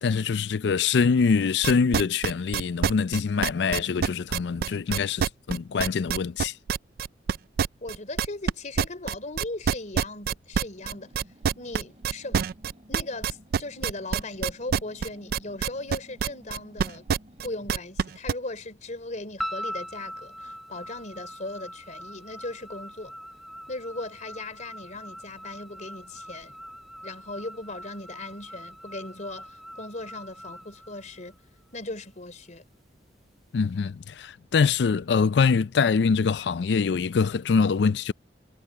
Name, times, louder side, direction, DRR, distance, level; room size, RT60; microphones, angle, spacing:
voice 1, 0.0-6.5 33.5-38.1, left 5 dB, 65° left, 0.4 m, -24 dB
sound 1, 1.6-8.5 8.8-18.3, right 7 dB, 55° right, 0.3 m, -26 dB
voice 2, 7.8-11.1 11.6-12.4 12.9-17.1 17.4-23.1 23.7-26.6 27.0-31.4 31.7-32.6, left 2 dB, 45° left, 3.7 m, -38 dB
sound 2, 10.8-17.8, equal, 35° right, 4.3 m, -54 dB
sound 3, 19.4-31.7, equal, ahead, 0.8 m, -41 dB
head